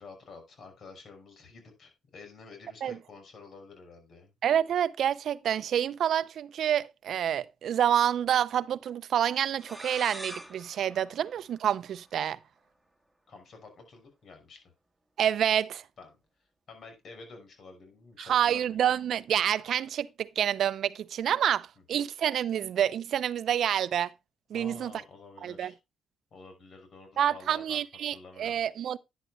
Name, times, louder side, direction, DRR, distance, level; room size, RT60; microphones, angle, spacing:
voice 1, 0.0-4.3 11.1-11.2 13.3-14.6 16.0-16.2 16.7-18.8 21.9-22.0 24.5-25.8 26.3-28.7, left 4 dB, 55° left, 5.8 m, -50 dB
voice 2, 4.4-12.4 15.2-15.8 18.2-24.1 24.5-24.9 25.4-25.7 27.2-29.0, right 10 dB, 65° right, 0.6 m, -28 dB
sound 1, 9.6-12.2, right 1 dB, 5° right, 1.8 m, -45 dB
11.0 x 10.5 x 2.4 m
cardioid pair, 90°, 0 cm